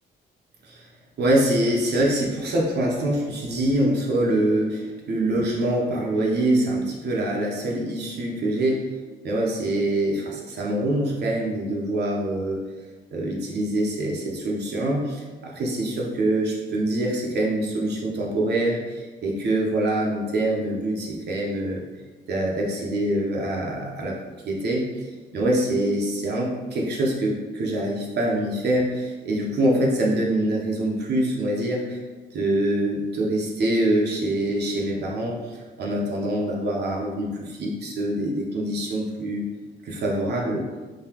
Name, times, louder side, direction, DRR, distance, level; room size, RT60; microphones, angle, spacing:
voice 1, 1.2-8.9 9.2-12.7 13.1-21.8 22.3-24.2 24.5-25.1 25.3-32.0 32.3-39.4 39.8-40.6, right 1 dB, 55° right, -2 dB, 0.8 m, -24 dB
3.9 x 2.8 x 2.9 m, 1.3 s
cardioid pair, 90°, 20 cm